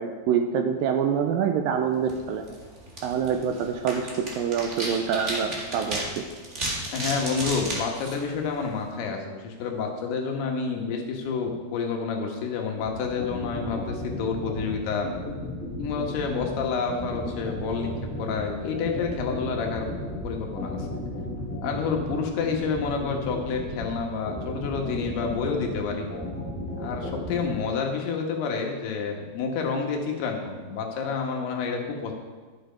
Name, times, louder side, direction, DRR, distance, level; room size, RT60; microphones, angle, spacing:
voice 1, 0.0-2.6 3.0-6.3, right 7 dB, 80° right, 5 dB, 2.1 m, -26 dB
sound 1, 2.0-8.9, right 1 dB, 35° right, 1.1 m, -35 dB
voice 2, 6.9-15.1 15.8-17.9 18.2-19.9 20.2-21.0 21.6-26.1 26.8-32.1, left 5 dB, 85° left, 2 dB, 3.4 m, -29 dB
sound 2, 12.8-27.6, equal, 5° left, 2.8 m, -34 dB
11.5 x 8.0 x 5.1 m, 1.4 s
omnidirectional pair, 4.5 m